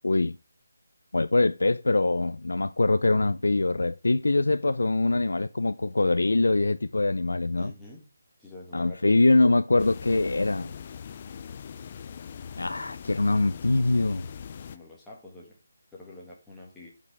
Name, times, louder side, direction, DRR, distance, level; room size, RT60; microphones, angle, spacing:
voice 1, 0.0-0.4 1.1-7.7 8.7-10.7 12.6-14.3, left 2 dB, 85° left, 0.5 m, -23 dB
voice 2, 7.6-8.0 8.4-9.2 14.7-15.6 15.9-16.9, left 2 dB, 5° left, 1.7 m, -46 dB
sound 1, 9.8-14.8, left 7 dB, 25° left, 0.4 m, -41 dB
13.0 x 5.5 x 3.4 m
figure-of-eight pair, 175°, 0 cm